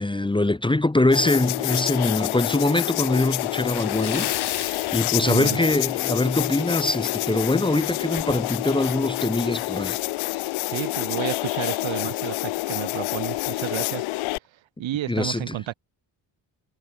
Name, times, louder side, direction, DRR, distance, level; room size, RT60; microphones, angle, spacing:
voice 1, 0.0-10.0 15.1-15.6, left 2 dB, 10° left, 1.3 m, -23 dB
sound 1, 1.1-14.4, left 21 dB, 85° left, 1.2 m, -28 dB
Splash splatter, 3.6-6.0 6.3-6.5 6.9-7.0 8.5-8.6 8.9-9.0 9.6-9.9, left 11 dB, 55° left, 1.4 m, -33 dB
voice 2, 5.3-5.6 10.7-14.1 14.8-15.7, right 14 dB, 70° right, 2.2 m, -31 dB
supercardioid pair, 75°, 48 cm